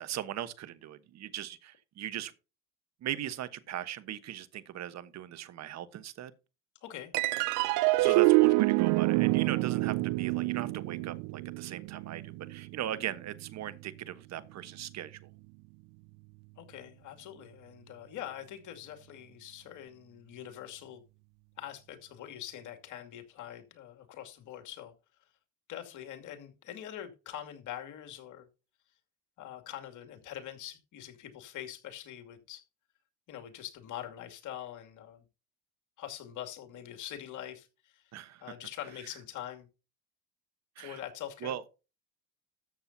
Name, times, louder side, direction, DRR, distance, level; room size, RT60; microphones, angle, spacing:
voice 1, 0.0-2.3 3.0-6.3 8.0-15.3 38.1-38.5 40.8-41.0 41.4-41.6, right 11 dB, 50° right, 1.2 m, -39 dB
voice 2, 6.8-7.1 8.0-8.3 16.6-21.0 21.6-24.9 25.7-28.5 29.4-32.6 33.3-35.2 36.0-38.1 38.4-39.7 40.8-41.5, left 11 dB, 60° left, 2.5 m, -44 dB
sound 1, 7.1-13.8, right 22 dB, 65° right, 0.5 m, -27 dB
13.5 x 7.7 x 2.8 m
supercardioid pair, 90°, 34 cm